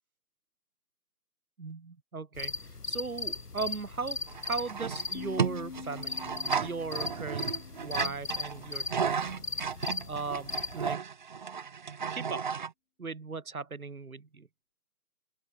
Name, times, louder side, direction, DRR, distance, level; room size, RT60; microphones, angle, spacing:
voice 1, 1.6-4.2 4.5-6.3 6.6-7.5 7.8-9.4 10.1-11.1 12.1-12.4 13.0-14.5, right 4 dB, 60° right, 7.4 m, -38 dB
sound 1, 2.3-10.9, left 3 dB, 70° left, 5.4 m, -38 dB
sound 2, 4.3-12.7, right 6 dB, 30° right, 1.5 m, -34 dB
sound 3, 5.1-9.0, left 6 dB, 45° left, 4.5 m, -46 dB
open air
figure-of-eight pair, 155°, 48 cm